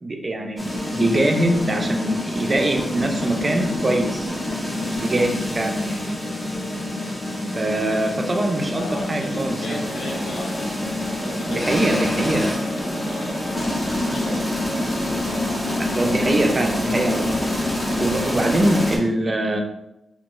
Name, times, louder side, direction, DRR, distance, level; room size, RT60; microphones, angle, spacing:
voice 1, 0.0-0.7 0.9-4.3 5.0-6.1 7.5-9.8 11.5-12.6 15.8-17.4 18.0-19.6, right 1 dB, 35° right, 3 dB, 0.4 m, -23 dB
sound 1, 0.6-19.0, left 1 dB, 15° left, 0.6 m, -26 dB
voice 2, 8.8-10.8 11.2-12.3 12.8-13.6 13.9-14.4, left 2 dB, 75° left, 1 dB, 0.5 m, -35 dB
2.3 x 2.3 x 2.9 m, 0.87 s
cardioid pair, 90°, 0 cm